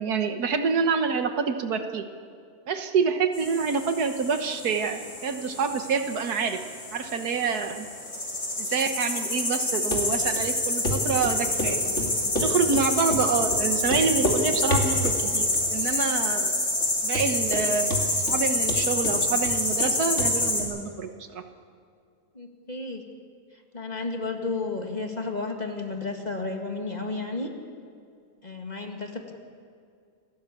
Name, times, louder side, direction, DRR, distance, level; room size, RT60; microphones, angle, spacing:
voice 1, 0.0-2.1 2.7-6.6 6.9-7.9 8.6-11.8 12.4-16.5 17.0-18.0 18.3-21.4, right 5 dB, 75° right, 7 dB, 1.7 m, -27 dB
sound 1, 3.3-20.6, left 1 dB, 75° left, 5.3 m, -28 dB
Run, 9.9-10.0 10.4-10.5 10.8-11.0 11.2-11.7 12.0-12.8 13.1-13.2 13.5-13.6 13.9-14.4 14.7-15.2 15.5-16.0 16.3-16.4 16.8-16.9 17.2-17.7 17.9-18.4 18.7-19.9 20.2-20.3 20.6-20.7, left 1 dB, 50° left, 3.1 m, -29 dB
voice 2, 22.3-23.0 23.7-27.5 28.4-29.3, left 3 dB, 25° left, 3 dB, 2.0 m, -32 dB
29.0 x 13.5 x 8.4 m, 2.3 s
omnidirectional pair, 1.7 m